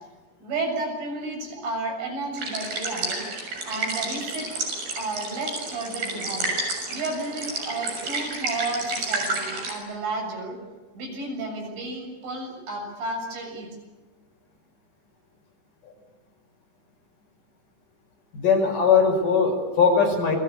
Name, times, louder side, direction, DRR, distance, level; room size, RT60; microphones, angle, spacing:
voice 1, 0.4-3.3 3.6-4.5 5.0-6.5 6.9-10.6 10.9-13.7, right 2 dB, 85° right, 2 dB, 9.6 m, -32 dB
sound 1, 2.3-9.7, right 3 dB, 50° right, 8.3 m, -30 dB
voice 2, 18.3-20.4, left 5 dB, 45° left, 2 dB, 6.7 m, -20 dB
29.0 x 22.0 x 8.6 m, 1.2 s
omnidirectional pair, 5.5 m